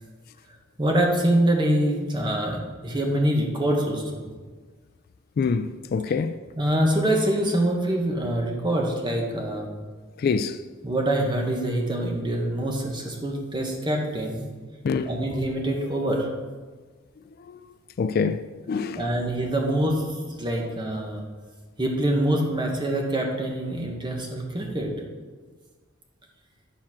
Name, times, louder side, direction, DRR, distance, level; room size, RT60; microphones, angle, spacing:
voice 1, 0.8-4.3 6.6-9.8 10.8-14.4 15.0-16.3 18.9-21.2 21.8-24.9, right 1 dB, 25° right, 1.3 m, -25 dB
voice 2, 5.4-6.4 10.2-10.6 14.8-15.2 17.5-17.6 18.0-19.1, left 5 dB, 50° left, 0.3 m, -26 dB
9.8 x 4.3 x 6.0 m
head